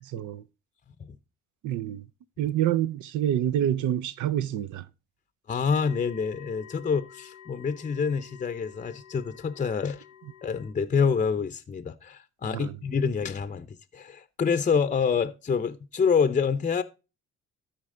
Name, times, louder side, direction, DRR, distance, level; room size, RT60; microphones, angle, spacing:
voice 1, 0.0-0.4 1.6-2.0 2.4-4.9 12.5-12.7, right 11 dB, 75° right, 0.5 m, -27 dB
voice 2, 5.5-10.0 10.4-13.7 13.9-16.8, left 6 dB, 25° left, 0.6 m, -27 dB
sound 1, 5.7-10.7, left 10 dB, 85° left, 0.9 m, -50 dB
13.0 x 4.6 x 3.7 m
cardioid pair, 90°, 30 cm